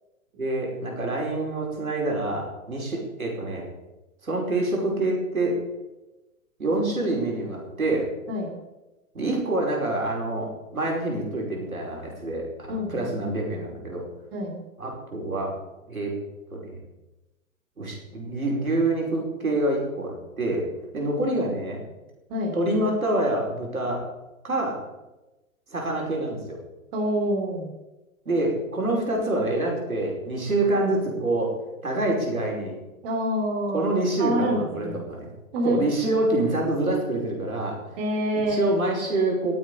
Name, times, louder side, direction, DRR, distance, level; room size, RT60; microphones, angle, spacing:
voice 1, 0.4-3.6 4.2-5.6 6.6-8.1 9.1-14.0 14.8-15.5 15.9-16.1 16.5-16.8 17.8-20.7 20.9-21.8 22.5-24.0 24.4-24.8 25.7-26.6 28.3-31.6 31.8-32.7 33.7-35.3 35.6-37.8 38.3-39.5, right 2 dB, 85° right, -1 dB, 5.1 m, -26 dB
voice 2, 12.7-13.1 14.3-14.6 22.3-22.5 26.9-27.7 33.0-33.9 34.2-34.9 35.5-35.9 38.0-38.6, equal, 45° right, 0 dB, 3.3 m, -26 dB
19.5 x 8.6 x 5.0 m, 1.0 s
figure-of-eight pair, 110°, 41 cm